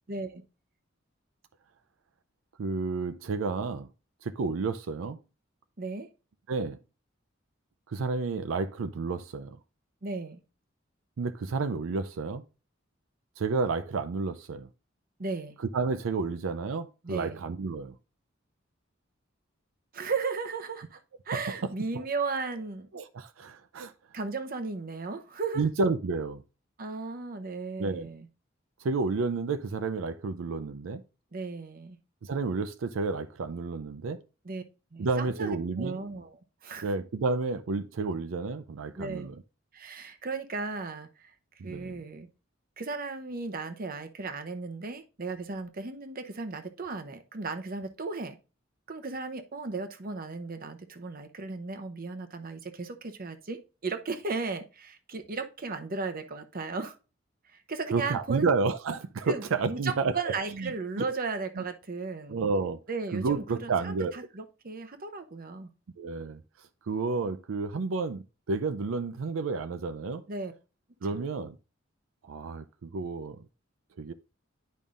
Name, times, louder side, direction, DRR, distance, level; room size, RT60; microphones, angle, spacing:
voice 1, 0.1-0.4 5.8-6.1 10.0-10.4 15.2-15.6 17.0-17.4 19.9-21.0 21.3-22.9 24.1-25.7 26.8-28.3 31.3-32.0 34.4-34.6 34.9-36.4 36.6-36.9 39.0-39.3 39.7-41.3 41.6-42.3 42.8-48.4 48.9-57.0 57.5-58.4 59.3-62.4 62.9-65.7 70.3-70.5 71.1-71.2, right 4 dB, 50° right, 0.8 m, -35 dB
voice 2, 2.6-3.9 4.2-5.2 6.5-6.8 7.9-9.6 11.2-12.4 13.4-14.7 15.7-17.9 21.3-22.0 22.9-23.9 25.6-26.4 27.8-28.1 28.8-31.0 32.2-34.2 35.0-36.0 36.8-39.4 41.6-42.0 57.9-61.1 61.6-61.7 62.3-62.8 63.1-64.1 66.0-66.4 66.8-70.2 71.0-71.6 72.2-73.4 74.0-74.1, right 4 dB, 90° right, 0.5 m, -31 dB
10.5 x 5.4 x 2.5 m
head